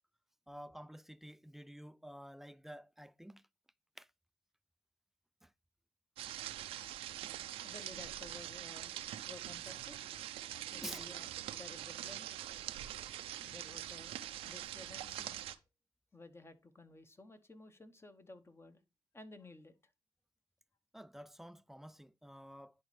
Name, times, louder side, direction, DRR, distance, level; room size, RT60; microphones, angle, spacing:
voice 1, 0.5-3.4 4.0-4.1 5.4-5.5 10.8-11.0 20.9-22.7, equal, 5° right, 0.3 m, -50 dB
sound 1, 6.2-15.6, right 12 dB, 85° right, 0.5 m, -44 dB
voice 2, 7.6-8.9 9.3-9.9 10.7-12.3 13.4-15.4 16.1-18.8 19.1-19.7, left 2 dB, 25° left, 1.1 m, -54 dB
10.5 x 4.1 x 3.3 m
supercardioid pair, 55°, 10 cm